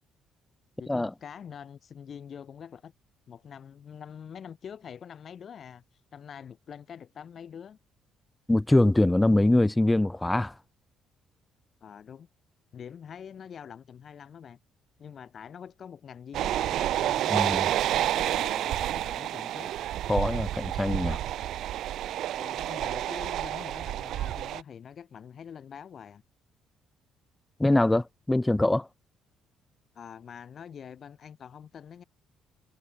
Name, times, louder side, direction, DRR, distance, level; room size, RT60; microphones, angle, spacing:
voice 1, 0.8-2.9 3.3-5.8 6.1-7.8 11.8-12.3 12.7-14.6 15.0-17.7 18.1-19.7 22.4-26.2 29.9-32.0, left 8 dB, 50° left, 7.5 m, -45 dB
voice 2, 8.5-10.5 17.3-17.7 20.1-21.2 27.6-28.9, left 1 dB, 10° left, 0.5 m, -23 dB
sound 1, 16.3-24.6, right 12 dB, 70° right, 0.4 m, -29 dB
cardioid pair, 100°, 0 cm